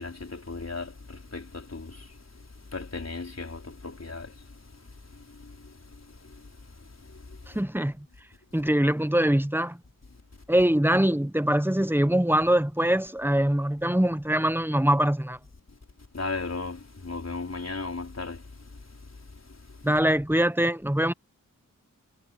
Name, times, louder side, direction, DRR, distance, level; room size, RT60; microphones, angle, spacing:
voice 1, 0.0-1.9 2.7-4.3 16.1-18.4, left 3 dB, 50° left, 4.8 m, -35 dB
voice 2, 7.5-8.0 8.5-9.8 10.5-15.4 19.8-21.1, right 1 dB, 5° right, 1.2 m, -23 dB
wide cardioid pair, 55°, 34 cm